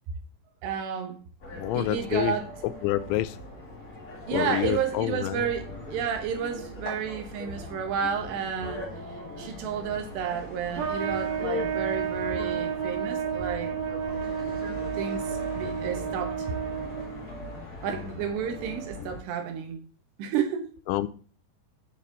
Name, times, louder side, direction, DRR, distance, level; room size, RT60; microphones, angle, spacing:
voice 1, 0.6-1.2 1.7-2.5 4.3-8.9 9.4-13.8 15.0-16.6 17.8-19.8 20.2-20.7, right 7 dB, 75° right, 3.2 m, -31 dB
sound 1, 1.4-19.2, left 2 dB, 55° left, 0.9 m, -40 dB
voice 2, 1.6-2.4 2.8-3.4 4.3-5.5 20.9-21.1, left 15 dB, 85° left, 2.8 m, -27 dB
Trumpet, 10.7-17.3, right 7 dB, 45° right, 2.3 m, -31 dB
10.0 x 4.3 x 3.7 m
omnidirectional pair, 5.2 m